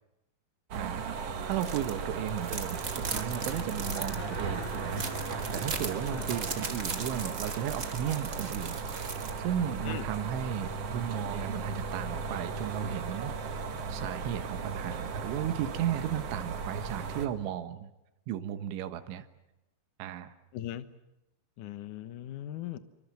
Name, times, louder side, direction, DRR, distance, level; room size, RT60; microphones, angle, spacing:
sound 1, 0.7-17.3, right 4 dB, 55° right, 1.7 m, -36 dB
voice 1, 0.7-1.1 1.5-8.8 9.1-13.3 13.9-17.9 18.3-19.3 20.0-20.3, right 10 dB, 80° right, 9 dB, 3.7 m, -35 dB
sound 2, 1.6-1.9 2.3-9.4, right 4 dB, 40° right, 1.2 m, -38 dB
sound 3, 3.4-8.9, left 3 dB, 35° left, 4.8 m, -49 dB
voice 2, 20.5-20.9 21.6-22.8, left 12 dB, 75° left, 12 dB, 1.9 m, -39 dB
27.5 x 25.0 x 7.7 m, 0.93 s
omnidirectional pair, 5.4 m